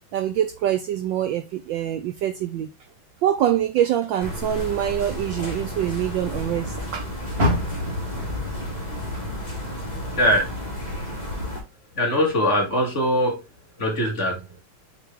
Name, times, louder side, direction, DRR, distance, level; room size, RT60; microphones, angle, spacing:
voice 1, 0.1-2.7 3.2-7.1, right 11 dB, 75° right, 1.1 m, -24 dB
sound 1, 4.2-11.6, equal, 20° left, 2.3 m, -32 dB
Car, 7.3-10.6 11.0-12.4 12.9-13.0 13.6-13.7, left 1 dB, 30° right, 1.9 m, -29 dB
voice 2, 10.2-10.5 12.0-13.4 13.8-14.4, equal, 35° left, 2.0 m, -21 dB
6.8 x 4.0 x 3.4 m
omnidirectional pair, 2.4 m